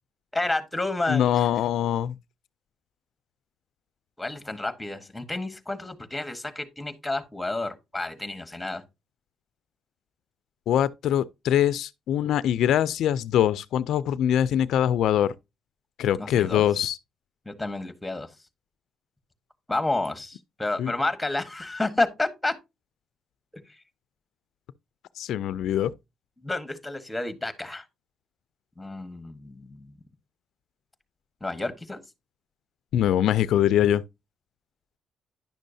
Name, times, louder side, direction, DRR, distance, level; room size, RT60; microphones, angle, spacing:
voice 1, 0.3-1.5 4.2-8.8 16.2-16.7 17.4-18.4 19.7-22.5 23.5-23.8 26.4-27.9 28.8-30.0 31.4-32.0, left 2 dB, 10° left, 1.2 m, -30 dB
voice 2, 1.1-2.1 10.7-15.3 16.0-17.0 20.8-20.9 25.2-25.9 32.9-34.0, left 10 dB, 80° left, 0.3 m, -23 dB
10.5 x 6.3 x 2.6 m
cardioid pair, 90°, 0 cm